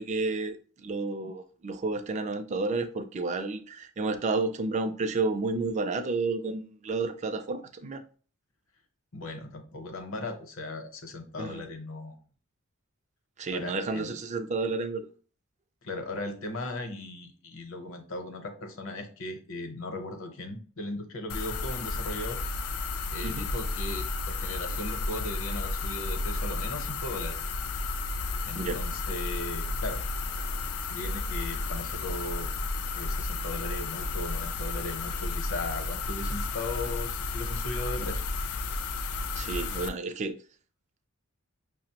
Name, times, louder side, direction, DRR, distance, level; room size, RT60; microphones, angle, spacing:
voice 1, 0.0-8.0 11.4-11.7 13.4-15.1 23.2-23.5 28.5-28.8 39.3-40.4, right 3 dB, 30° right, 0.3 m, -31 dB
voice 2, 9.1-12.2 13.5-14.1 15.8-22.4 23.1-27.4 28.5-30.0 30.9-32.5 32.9-38.2, left 2 dB, 65° left, 0.8 m, -37 dB
sound 1, 21.3-39.9, left 3 dB, 80° left, 0.4 m, -32 dB
5.7 x 2.0 x 2.8 m
head